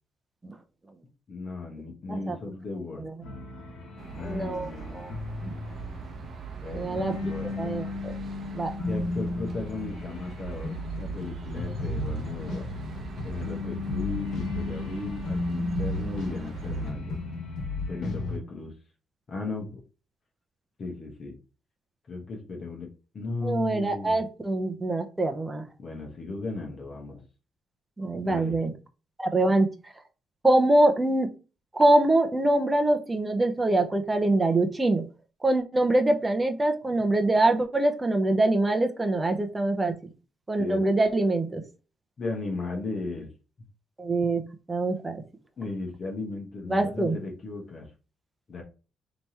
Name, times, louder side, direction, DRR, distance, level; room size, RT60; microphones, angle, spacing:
voice 1, 1.3-3.1 4.1-5.0 6.6-7.8 8.9-12.7 13.2-17.2 17.9-18.7 19.3-19.8 20.8-21.4 22.1-22.9 23.1-24.2 25.8-27.2 28.2-28.6 40.6-40.9 42.2-43.3 45.6-47.9 48.5-48.6, left 3 dB, 45° left, 0 dB, 1.2 m, -36 dB
sound 1, 3.2-6.6 6.8-18.4, left 2 dB, 75° left, 1.5 m, -34 dB
sound 2, 4.0-16.9, right 5 dB, 55° right, 0.8 m, -41 dB
voice 2, 4.2-4.7 4.9-5.1 5.4-5.5 6.7-7.3 7.6-8.1 8.5-8.7 23.4-25.6 28.0-28.7 29.2-29.7 30.4-31.3 31.7-35.0 35.4-39.9 40.5-41.6 44.0-44.4 44.7-45.2 46.7-47.2, right 2 dB, 20° right, 6 dB, 0.7 m, -24 dB
3.4 x 3.0 x 4.2 m, 0.33 s
cardioid pair, 90°, 0 cm